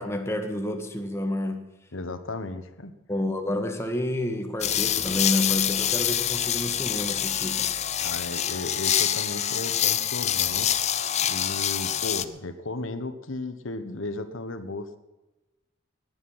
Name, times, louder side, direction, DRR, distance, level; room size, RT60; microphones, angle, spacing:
voice 1, 0.0-1.6 3.1-7.7, left 1 dB, 15° left, 4 dB, 1.6 m, -29 dB
voice 2, 1.9-2.9 8.0-10.7 11.2-15.0, left 2 dB, 90° left, 10 dB, 1.3 m, -35 dB
sound 1, 4.6-12.3, left 10 dB, 35° left, 0.6 m, -26 dB
18.5 x 10.5 x 5.7 m, 1.0 s
head